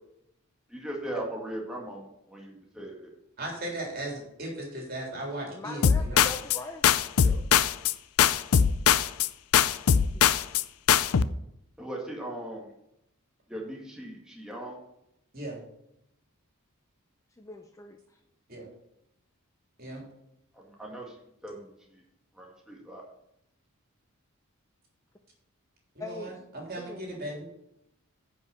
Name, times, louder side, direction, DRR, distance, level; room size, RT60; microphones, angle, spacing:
voice 1, 0.7-3.1 7.2-7.4 11.8-12.7 13.5-14.8 20.5-21.2 21.4-22.0 22.3-23.0, right 1 dB, 5° right, -2 dB, 2.0 m, -39 dB
voice 2, 3.4-6.3 15.3-15.6 18.5-18.7 19.8-20.0 26.0-27.5, right 1 dB, 45° right, -1 dB, 3.4 m, -37 dB
voice 3, 5.5-7.0 10.1-10.4 17.4-18.0 26.0-26.3 26.8-27.3, left 2 dB, 15° left, 4 dB, 0.6 m, -42 dB
sound 1, 5.8-6.6 6.8-9.3 9.5-10.6 10.9-11.2, left 8 dB, 80° left, 0.5 m, -21 dB
10.0 x 5.6 x 6.9 m, 0.80 s
head